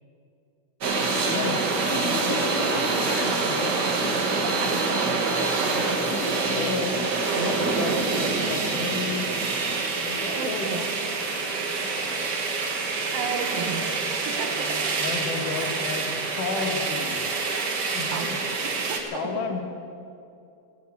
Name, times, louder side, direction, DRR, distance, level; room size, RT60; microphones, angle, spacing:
sound 1, 0.8-19.0, right 3 dB, 50° right, 1.3 m, -26 dB
voice 1, 1.3-3.7 4.0-4.8 5.7-7.1 7.3-9.3 10.0-10.8 11.8-11.9 15.0-17.2 17.9-18.4 19.1-19.6, left 5 dB, 70° left, 3 dB, 2.9 m, -33 dB
voice 2, 4.6-5.0 6.3-6.4 7.0-7.1 7.7-8.3 10.3-11.0 13.1-15.0 18.1-19.2, right 6 dB, 90° right, 6 dB, 3.0 m, -35 dB
Zipper (clothing), 13.1-13.7 14.3-14.8 15.3-15.8 16.4-16.8 17.3-17.8, right 4 dB, 75° right, 3.2 m, -40 dB
16.0 x 10.5 x 8.5 m, 2.5 s
omnidirectional pair, 3.9 m